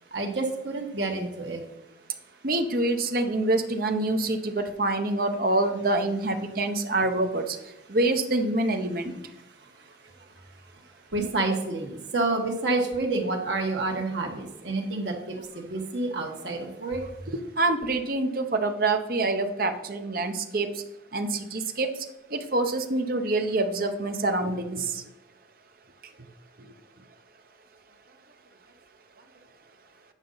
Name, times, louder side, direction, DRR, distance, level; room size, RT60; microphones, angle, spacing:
voice 1, 0.1-1.6 11.1-17.0, right 2 dB, 70° right, 2 dB, 1.5 m, -29 dB
voice 2, 2.4-7.4 7.9-9.1 17.6-20.7 21.1-21.9 22.3-24.8, right 2 dB, 50° right, 6 dB, 0.8 m, -26 dB
9.0 x 5.4 x 3.9 m, 0.93 s
head